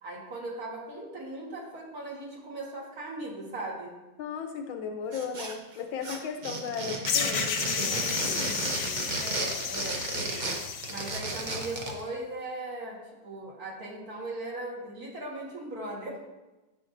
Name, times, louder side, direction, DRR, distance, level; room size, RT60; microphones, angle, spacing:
voice 1, 0.0-4.0 9.2-10.5 10.9-16.2, right 2 dB, 50° right, -3 dB, 2.0 m, -38 dB
voice 2, 4.2-9.1, left 6 dB, 85° left, 6 dB, 1.6 m, -37 dB
sound 1, 5.1-5.8 6.0-12.0, right 3 dB, 70° right, 0.4 m, -33 dB
sound 2, 7.1-11.8, left 6 dB, 65° left, 1.1 m, -32 dB
10.5 x 6.0 x 2.6 m, 1.1 s
omnidirectional pair, 2.1 m